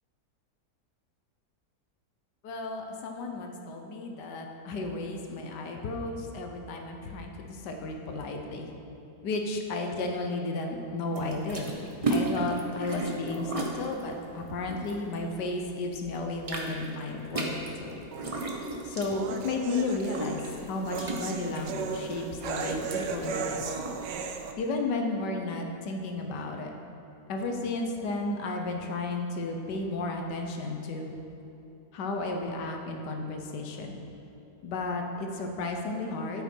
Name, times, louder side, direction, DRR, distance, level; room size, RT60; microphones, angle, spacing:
voice 1, 2.4-8.7 9.2-11.7 12.1-18.0 18.8-20.4 20.7-23.7 24.6-26.7 27.3-31.1 31.9-34.0 34.6-36.4, left 2 dB, 85° left, 3 dB, 1.5 m, -33 dB
sound 1, 11.1-15.7 16.0-24.0, right 2 dB, 30° right, 0.7 m, -35 dB
sound 2, 18.1-24.5, right 5 dB, 80° right, 1.3 m, -36 dB
9.3 x 8.2 x 4.4 m, 2.9 s
omnidirectional pair, 1.8 m